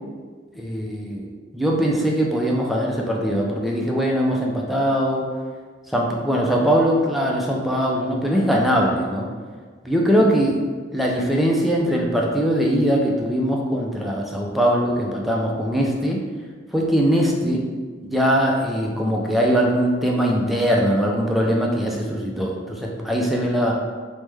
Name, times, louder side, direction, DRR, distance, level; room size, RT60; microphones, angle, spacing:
voice 1, 0.6-5.2 5.9-9.3 9.8-10.6 10.9-16.2 16.7-17.6 18.0-23.7, equal, ahead, -2 dB, 0.3 m, -21 dB
3.1 x 2.1 x 3.3 m, 1.5 s
head